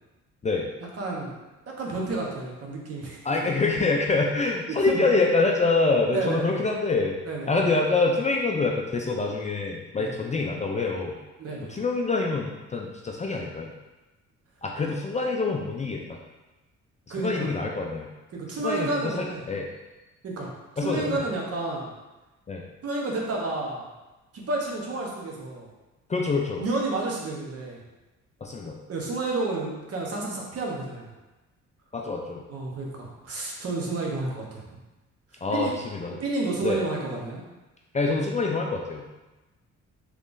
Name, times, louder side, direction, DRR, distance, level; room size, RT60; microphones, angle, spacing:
voice 1, 1.0-1.3 1.7-3.5 4.9-5.1 6.1-6.6 7.2-7.5 10.0-10.1 11.4-11.7 17.1-17.5 18.3-19.4 20.2-20.5 20.8-21.9 22.8-23.8 24.3-25.7 26.6-27.8 28.9-31.1 32.5-34.6 35.5-35.7 36.2-37.4, right 2 dB, 50° right, -2 dB, 0.9 m, -30 dB
voice 2, 3.2-7.1 7.5-11.2 11.7-13.7 14.6-16.2 17.2-18.1 18.6-19.7 20.8-21.2 22.5-22.6 26.1-26.6 28.4-28.8 31.9-32.4 35.4-36.1 36.6-36.8 37.9-39.0, left 3 dB, 25° left, 0 dB, 0.4 m, -26 dB
3.5 x 3.1 x 2.5 m, 1.1 s
cardioid pair, 90°, 30 cm